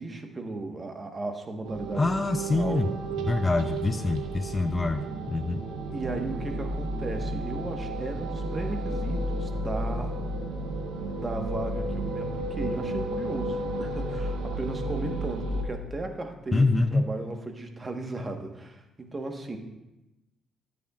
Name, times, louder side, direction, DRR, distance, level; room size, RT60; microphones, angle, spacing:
voice 1, 0.0-2.1 2.5-2.9 5.9-10.2 11.1-19.6, right 2 dB, 30° right, 4 dB, 1.3 m, -35 dB
sound 1, 1.6-15.6, right 1 dB, 85° right, 1.1 m, -32 dB
voice 2, 1.9-2.9 3.2-5.6 16.5-17.1, left 3 dB, 25° left, 9 dB, 0.5 m, -25 dB
14.5 x 8.4 x 2.4 m, 0.97 s
cardioid pair, 90°, 0 cm